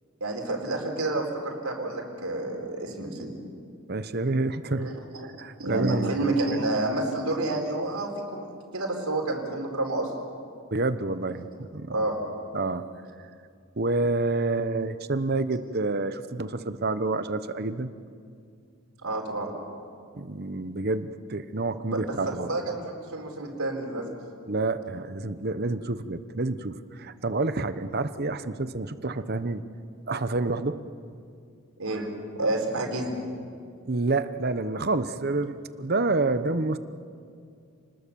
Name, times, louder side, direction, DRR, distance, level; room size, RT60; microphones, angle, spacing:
voice 1, 0.2-3.3 4.8-5.3 5.6-10.1 11.9-12.2 19.0-19.5 21.9-22.1 22.5-24.1 31.8-32.1 32.4-33.1, right 2 dB, 85° right, 1 dB, 4.3 m, -29 dB
voice 2, 3.9-4.9 5.4-6.1 6.5-6.6 10.7-12.0 12.5-12.9 13.8-17.9 20.1-22.5 24.5-29.6 30.1-30.8 33.8-36.8, right 3 dB, 45° right, 11 dB, 1.0 m, -28 dB
29.5 x 20.5 x 7.1 m, 2.3 s
head